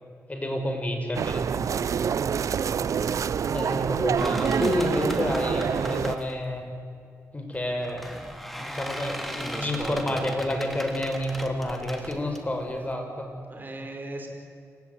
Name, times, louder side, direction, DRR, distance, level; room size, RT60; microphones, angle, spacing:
voice 1, 0.3-1.4 3.5-6.7 7.3-13.3, left 1 dB, 25° left, 4 dB, 5.8 m, -29 dB
sound 1, 1.1-6.2, right 7 dB, 70° right, 0.7 m, -26 dB
Creaky Door - Unprocessed, 4.2-6.5 7.5-12.9, equal, ahead, 3.1 m, -39 dB
voice 2, 9.4-10.2 13.5-14.3, right 2 dB, 35° right, 3 dB, 4.9 m, -37 dB
27.5 x 16.0 x 9.7 m, 2.4 s
cardioid pair, 65°, 6 cm